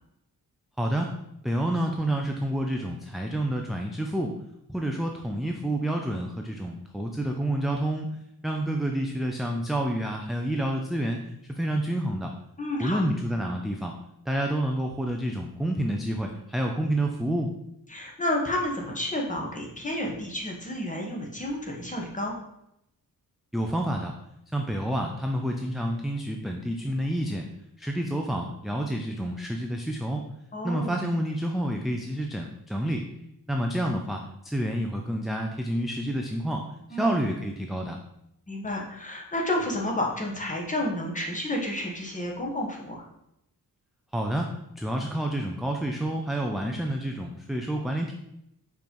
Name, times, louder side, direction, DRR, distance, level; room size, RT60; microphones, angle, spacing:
voice 1, 0.8-1.1 1.4-4.3 4.7-8.1 8.4-12.3 12.8-13.9 14.3-17.5 23.5-24.1 24.5-27.5 27.8-30.2 30.6-33.1 33.5-38.0 44.1-48.1, right 1 dB, ahead, 1 dB, 0.4 m, -29 dB
voice 2, 12.6-13.1 17.9-22.3 30.5-31.0 36.9-37.2 38.5-43.0, left 1 dB, 20° left, -1 dB, 1.3 m, -30 dB
5.1 x 4.5 x 5.3 m, 0.81 s
wide cardioid pair, 170°, 36 cm